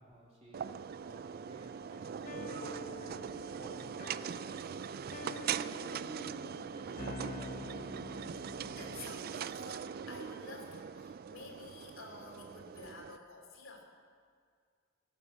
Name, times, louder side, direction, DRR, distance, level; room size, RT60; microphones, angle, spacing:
voice 1, 0.0-5.4 5.9-8.5, right 1 dB, 30° right, -4 dB, 2.9 m, -55 dB
sound 1, 0.5-13.2, right 7 dB, 50° right, 0.3 m, -41 dB
sound 2, 2.3-9.2, left 2 dB, 40° left, 0.9 m, -47 dB
voice 2, 8.4-13.9, left 3 dB, 80° left, 1 dB, 2.8 m, -51 dB
17.0 x 8.4 x 6.9 m, 2.1 s
head